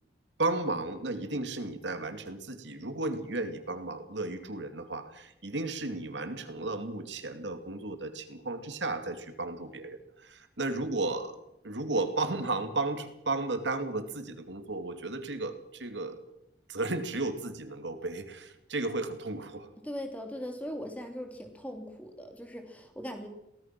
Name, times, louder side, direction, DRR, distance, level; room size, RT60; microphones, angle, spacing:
voice 1, 0.4-11.4 11.6-16.2 16.7-19.7, right 2 dB, 85° right, 8 dB, 2.6 m, -34 dB
voice 2, 19.8-23.3, equal, 10° left, 4 dB, 3.1 m, -39 dB
23.5 x 18.0 x 6.1 m, 0.84 s
head